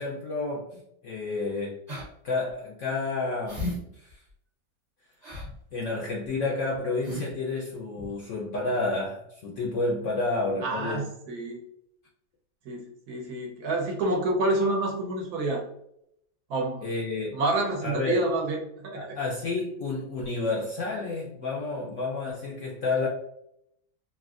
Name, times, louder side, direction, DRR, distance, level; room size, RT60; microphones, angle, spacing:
voice 1, 0.0-1.8 2.2-4.2 5.7-11.1 16.8-17.4 17.8-18.3 18.9-23.1, left 3 dB, 70° left, 0.7 m, -30 dB
sound 1, 1.9-2.1 2.5-2.6 3.5-3.8 4.1-4.2 5.2-5.5 6.2-6.4 6.7-6.8 7.0-7.3 8.0-8.1, left 1 dB, 35° right, 0.7 m, -35 dB
voice 2, 10.6-11.6 12.7-15.6 16.5-16.9 17.3-19.2, right 2 dB, 65° right, 1.2 m, -28 dB
3.2 x 2.6 x 2.4 m
omnidirectional pair, 1.8 m